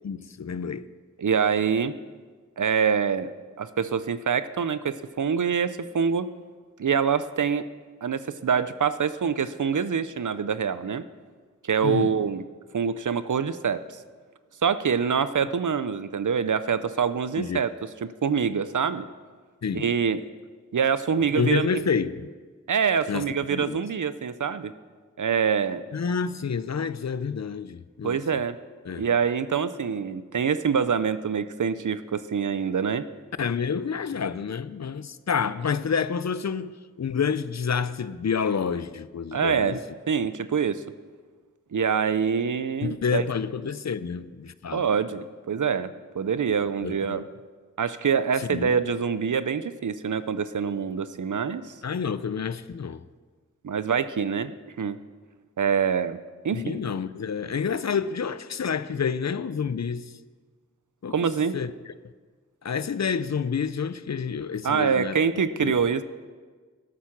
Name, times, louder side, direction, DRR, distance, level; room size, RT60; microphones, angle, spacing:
voice 1, 0.0-0.9 11.8-12.1 17.4-17.6 19.6-19.8 21.4-22.3 23.1-23.2 23.5-23.8 25.9-28.2 28.9-29.0 33.4-39.8 42.8-44.8 46.8-47.3 48.4-48.7 51.8-53.0 56.5-60.1 61.0-61.2 61.5-61.7 62.6-65.2 65.6-65.7, left 6 dB, 60° left, 0.5 m, -28 dB
voice 2, 1.2-1.9 2.6-3.3 3.6-6.3 6.8-7.7 8.0-11.0 11.6-12.4 12.7-13.8 14.6-17.7 18.0-19.0 19.7-20.2 20.7-21.8 22.7-24.7 25.2-25.8 28.0-28.6 29.0-33.1 39.3-40.8 41.7-43.2 44.7-47.2 47.8-51.7 53.6-55.0 55.6-56.2 56.4-56.8 61.1-61.6 64.6-66.0, right 6 dB, 80° right, 0.6 m, -25 dB
12.5 x 8.5 x 5.9 m
wide cardioid pair, 50°, 30 cm